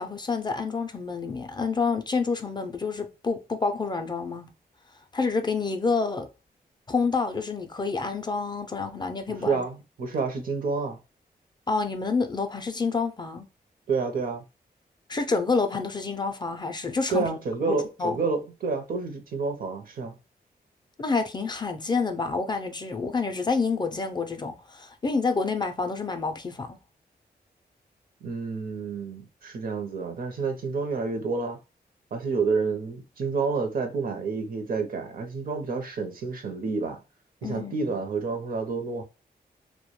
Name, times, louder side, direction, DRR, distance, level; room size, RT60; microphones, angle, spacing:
voice 1, 0.0-4.5 5.1-6.3 6.9-9.6 11.7-13.5 15.1-17.3 17.7-18.2 21.0-26.8 37.4-37.9, left 4 dB, 25° left, 0.3 m, -28 dB
voice 2, 9.5-11.0 13.9-14.4 17.1-20.1 28.2-31.6 32.1-37.0 37.4-39.0, right 4 dB, 60° right, 0.6 m, -29 dB
2.2 x 2.1 x 2.9 m
wide cardioid pair, 120°, 17 cm